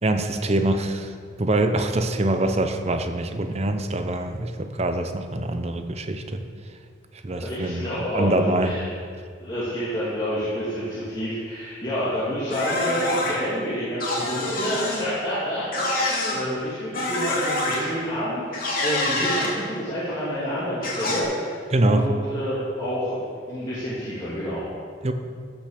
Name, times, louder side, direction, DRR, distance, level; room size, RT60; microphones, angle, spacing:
voice 1, 0.0-6.4 7.2-7.9 8.1-8.7 21.7-22.1 25.0-25.1, right 1 dB, 35° right, 7 dB, 0.8 m, -24 dB
voice 2, 7.3-8.9 9.4-23.2 23.5-24.7, equal, 25° left, -11 dB, 2.6 m, -28 dB
sound 1, 12.5-13.3 14.0-15.1 15.7-16.4 16.9-17.8 18.5-19.5 20.8-21.2, left 2 dB, 50° left, 2.8 m, -26 dB
14.5 x 6.3 x 6.6 m, 2.1 s
head